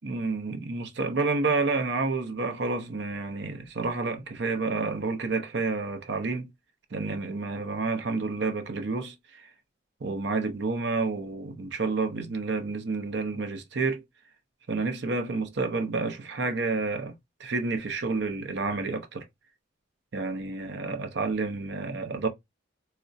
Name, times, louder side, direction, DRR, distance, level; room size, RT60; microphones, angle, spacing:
voice 1, 0.0-6.5 6.9-9.5 10.0-14.0 14.7-17.1 17.4-19.2 20.1-22.3, right 3 dB, 60° right, 0.6 m, -29 dB
3.8 x 2.1 x 2.4 m
head